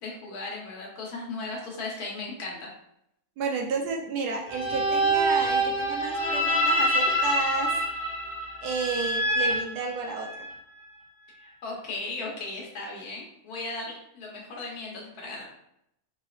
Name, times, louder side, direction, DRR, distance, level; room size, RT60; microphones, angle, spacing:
voice 1, 0.0-2.7 11.4-15.4, left 3 dB, 70° left, -2 dB, 1.5 m, -36 dB
voice 2, 3.4-7.7 8.6-10.5, right 4 dB, 75° right, 2 dB, 1.2 m, -31 dB
sound 1, 4.5-10.5, right 1 dB, 40° left, 0.9 m, -26 dB
4.7 x 3.1 x 2.4 m, 0.77 s
omnidirectional pair, 1.7 m